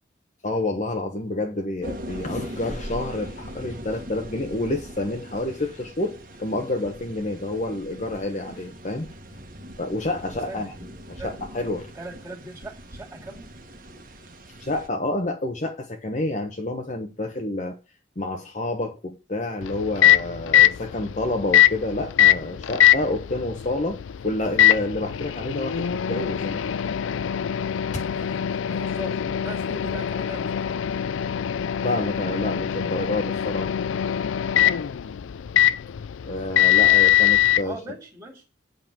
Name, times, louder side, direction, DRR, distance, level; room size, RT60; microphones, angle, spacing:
voice 1, 0.4-9.1 9.8-10.7 11.1-11.9 14.6-17.8 18.2-26.6 27.9-28.0 31.8-33.7 36.2-37.8, left 2 dB, 35° left, 1.1 m, -29 dB
sound 1, 1.8-14.9, equal, 45° right, 1.6 m, -40 dB
voice 2, 10.3-10.7 11.2-11.4 11.9-13.5 22.9-23.6 28.1-30.8 36.3-37.2 37.6-38.5, right 2 dB, 15° right, 2.4 m, -41 dB
Microwave oven, 19.6-37.6, left 11 dB, 75° left, 0.4 m, -22 dB
8.0 x 5.4 x 7.4 m
head